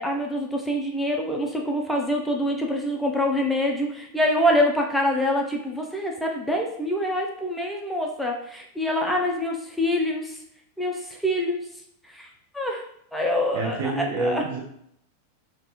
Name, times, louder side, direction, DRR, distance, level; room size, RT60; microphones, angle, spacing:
voice 1, 0.0-10.4 10.8-11.6 12.1-12.3 12.5-12.8 13.1-14.4, left 1 dB, ahead, -1 dB, 0.4 m, -25 dB
voice 2, 13.5-14.6, right 2 dB, 50° right, -1 dB, 0.7 m, -27 dB
3.2 x 2.1 x 2.9 m, 0.71 s
figure-of-eight pair, 90°, 0 cm